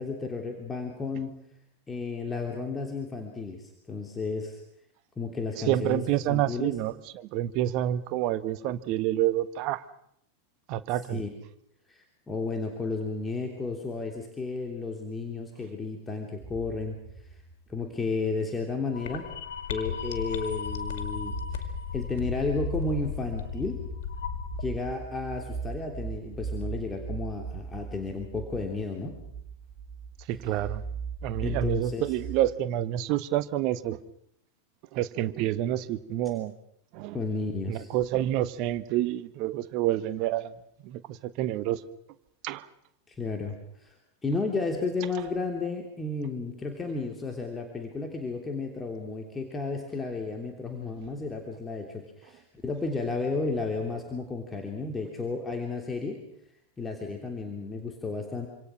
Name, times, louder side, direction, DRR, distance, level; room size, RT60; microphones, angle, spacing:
voice 1, 0.0-1.3 1.9-4.6 5.2-6.0 6.3-6.7 11.1-11.3 11.9-17.4 17.7-19.3 19.7-23.8 24.6-29.2 31.4-32.1 37.1-37.9 43.1-44.0 44.2-56.2 56.8-58.5, left 3 dB, 15° left, 2 dB, 3.2 m, -33 dB
voice 2, 5.7-9.8 10.7-11.2 30.3-30.8 31.2-34.0 34.9-36.5 36.9-37.2 37.7-40.5 40.8-41.8 42.4-42.7, right 13 dB, 40° right, 14 dB, 1.3 m, -28 dB
sound 1, 16.4-18.1 19.3-19.9 20.3-32.4, right 6 dB, 25° right, 4.8 m, -39 dB
sound 2, 18.9-24.7, left 7 dB, 55° left, 2.5 m, -35 dB
27.0 x 26.5 x 6.2 m, 0.72 s
figure-of-eight pair, 90°, 0 cm